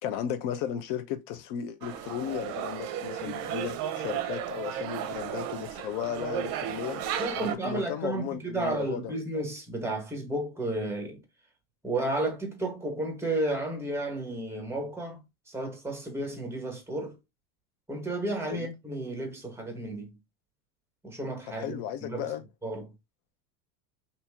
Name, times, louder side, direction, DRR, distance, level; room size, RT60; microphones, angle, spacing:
voice 1, 0.0-7.0 7.4-9.1 18.5-18.7 21.6-22.4, left 9 dB, 60° left, 0.8 m, -35 dB
sound 1, 1.8-7.5, right 9 dB, 50° right, 0.7 m, -34 dB
voice 2, 7.2-11.2 11.8-15.2 15.5-17.2 17.9-20.1 21.0-22.3 22.6-22.9, right 2 dB, 5° right, 1.4 m, -32 dB
2.9 x 2.8 x 3.6 m
hypercardioid pair, 95°, 45 cm